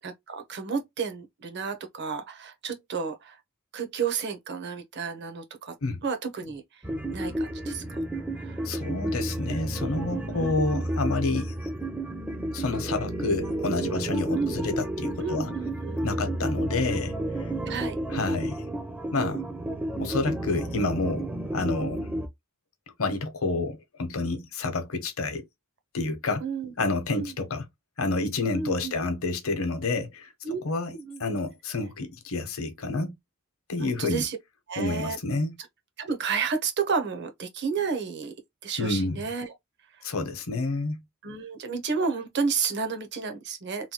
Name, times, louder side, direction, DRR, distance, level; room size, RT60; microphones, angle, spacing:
voice 1, 0.0-3.4 3.7-5.8 6.0-6.6 7.1-7.8 8.3-8.7 10.3-10.5 14.3-14.6 15.2-16.0 17.7-18.0 26.4-26.7 27.2-27.3 28.5-29.0 30.4-30.6 30.9-31.2 33.8-34.4 34.7-35.2 36.0-38.3 38.6-39.5 41.2-43.9, right 5 dB, 55° right, 0.8 m, -31 dB
sound 1, 6.8-22.3, right 1 dB, 5° right, 0.4 m, -31 dB
voice 2, 8.6-11.5 12.5-15.5 16.0-17.5 18.1-18.6 19.1-19.5 20.0-21.3 21.5-22.0 23.0-25.4 25.9-26.4 26.8-27.6 28.0-30.3 30.6-30.9 31.2-33.1 33.7-34.2 34.8-35.5 38.8-39.3 40.0-41.0, left 3 dB, 70° left, 0.8 m, -29 dB
3.1 x 2.2 x 2.8 m
head